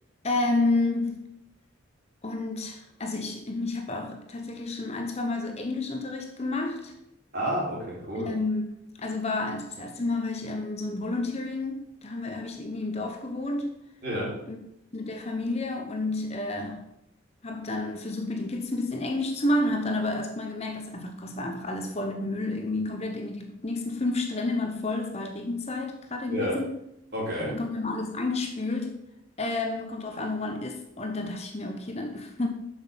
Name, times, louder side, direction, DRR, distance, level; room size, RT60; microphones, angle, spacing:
voice 1, 0.2-1.2 2.2-6.9 8.1-8.6 9.0-13.7 14.5-14.6 14.9-16.8 17.4-26.7 27.5-29.0 29.4-32.5, left 2 dB, 30° left, 0.9 m, -30 dB
voice 2, 7.3-8.3 14.0-14.3 26.3-26.6 27.1-27.6, equal, 50° right, 4.0 m, -30 dB
7.5 x 6.3 x 5.8 m
head